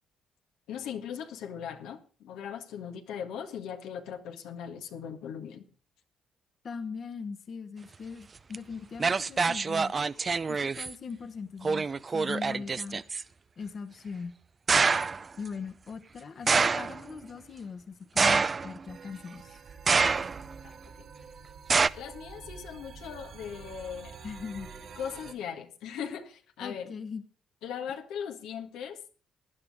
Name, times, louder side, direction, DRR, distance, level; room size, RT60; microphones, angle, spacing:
voice 1, 0.7-5.6 20.6-20.7 22.0-24.2 25.0-26.9 27.6-29.0, left 8 dB, 90° left, 1.7 m, -39 dB
voice 2, 6.6-9.9 10.5-11.9 12.1-13.0 13.6-14.4 15.4-19.6 24.2-24.7 26.6-27.2 27.9-28.0, left 5 dB, 50° left, 1.3 m, -40 dB
sound 1, 8.5-8.6 9.0-10.9 11.6-13.2 14.7-15.2 16.5-17.0 18.2-18.9 19.9-20.5 21.7-21.9, right 4 dB, 35° right, 0.6 m, -26 dB
sound 2, 18.9-25.3, right 6 dB, 60° right, 2.9 m, -47 dB
18.5 x 10.5 x 3.6 m
cardioid pair, 90°, 0 cm